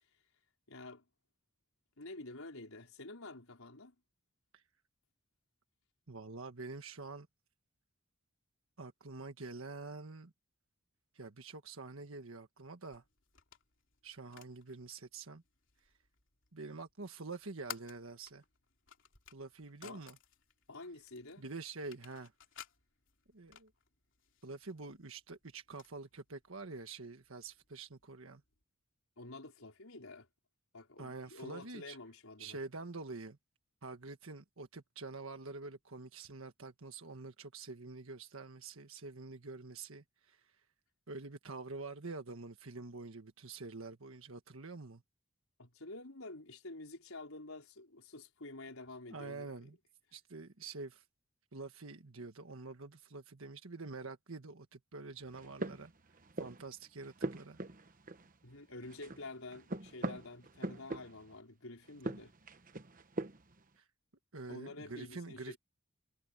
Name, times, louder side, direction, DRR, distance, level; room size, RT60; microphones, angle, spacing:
voice 1, 0.7-1.0 2.0-3.9 19.8-20.0 20.7-21.4 29.2-30.3 30.7-32.6 45.6-49.7 58.4-62.3 64.5-65.6, left 2 dB, 80° left, 4.7 m, -49 dB
voice 2, 6.1-7.3 8.8-10.3 11.1-13.0 14.0-15.4 16.5-18.4 19.3-20.2 21.4-22.3 23.3-23.7 24.4-28.4 31.0-32.0 32.4-33.4 33.8-40.5 41.1-45.0 49.1-49.8 50.1-51.0 51.5-55.9 56.4-57.6 63.8-63.9 64.3-65.6, right 3 dB, 70° right, 1.5 m, -47 dB
sound 1, 12.8-28.6, left 8 dB, 60° left, 3.7 m, -57 dB
sound 2, 55.3-56.7 57.0-58.6 58.8-61.4 61.9-63.6, right 2 dB, 40° right, 1.1 m, -42 dB
head